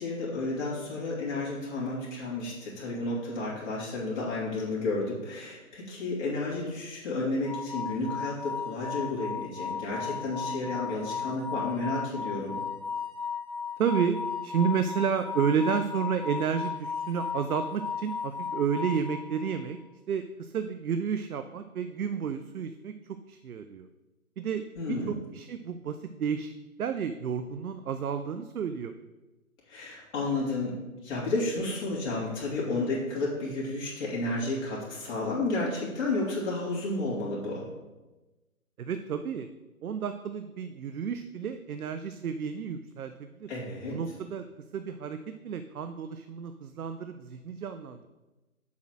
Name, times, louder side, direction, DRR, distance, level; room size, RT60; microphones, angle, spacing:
voice 1, 0.0-12.6 24.8-25.2 29.7-37.7 43.5-44.0, left 2 dB, 50° left, -6 dB, 2.8 m, -32 dB
sound 1, 7.4-19.7, left 6 dB, 35° left, 1.2 m, -35 dB
voice 2, 13.8-19.8 20.1-23.0 23.3-23.9 24.4-26.5 26.8-28.9 38.8-39.5 39.8-43.5 43.9-44.4 44.7-45.2 45.4-48.1, right 7 dB, 75° right, 9 dB, 0.6 m, -31 dB
7.1 x 4.3 x 6.1 m, 1.1 s
figure-of-eight pair, 145°, 43 cm